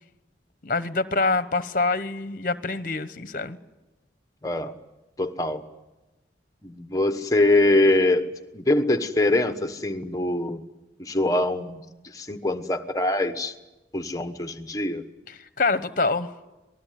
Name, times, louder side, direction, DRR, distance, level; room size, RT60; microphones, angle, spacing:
voice 1, 0.6-3.6 15.3-16.3, left 3 dB, 45° left, 13 dB, 1.0 m, -25 dB
voice 2, 4.4-4.7 5.2-5.6 6.6-10.6 11.0-11.8 12.1-13.5 13.9-15.0, left 2 dB, 20° left, 8 dB, 1.2 m, -23 dB
27.0 x 19.5 x 9.3 m, 1.1 s
head